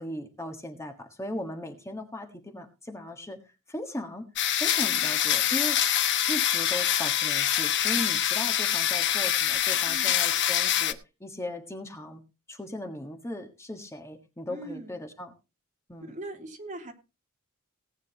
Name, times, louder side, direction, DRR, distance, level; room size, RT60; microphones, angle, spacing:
voice 1, 0.0-3.4 3.7-4.3 4.5-5.8 6.3-12.2 12.5-15.3 15.9-16.1, left 1 dB, 15° left, 5 dB, 1.5 m, -37 dB
sound 1, 4.4-10.9, left 10 dB, 55° left, 1.2 m, -25 dB
voice 2, 14.5-14.9 16.0-16.9, right 1 dB, 35° right, 3 dB, 3.0 m, -40 dB
19.0 x 9.4 x 2.9 m, 0.29 s
head